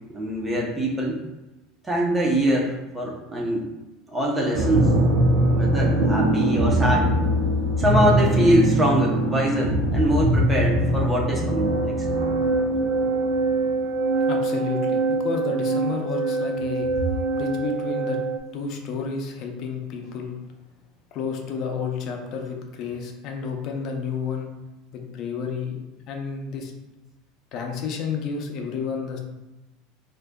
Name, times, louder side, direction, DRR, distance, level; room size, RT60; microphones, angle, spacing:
voice 1, 0.1-1.2 1.8-3.7 4.1-4.9 5.6-7.1 7.8-12.0, equal, 10° right, -3 dB, 0.7 m, -23 dB
sound 1, 4.5-18.4, right 1 dB, 55° right, 0.5 m, -22 dB
voice 2, 14.3-16.9 17.3-18.2 18.5-20.4 21.1-24.5 24.9-25.8 26.1-26.7 27.5-29.2, left 5 dB, 45° left, 2 dB, 0.6 m, -31 dB
4.8 x 2.5 x 2.2 m, 1.0 s
supercardioid pair, 150°, 0 cm